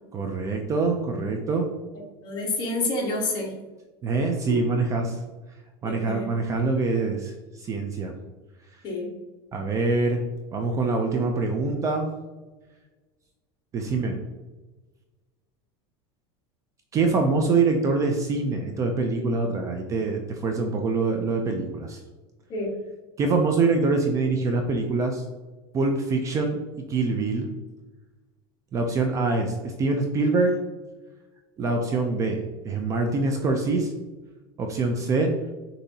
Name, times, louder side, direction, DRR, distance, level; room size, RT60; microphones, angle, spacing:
voice 1, 0.1-1.7 4.0-5.2 5.8-8.1 9.5-10.2 10.5-12.1 13.7-14.2 16.9-22.0 23.2-25.2 25.7-26.6 26.9-27.5 28.7-30.5 31.6-33.9 34.6-35.3, right 3 dB, 25° right, 3 dB, 0.4 m, -24 dB
voice 2, 2.2-3.5 4.5-4.6 5.8-6.3 8.8-9.1 22.5-22.7, left 2 dB, 35° left, -2 dB, 1.3 m, -28 dB
6.8 x 2.7 x 2.7 m, 1.2 s
supercardioid pair, 155°, 13 cm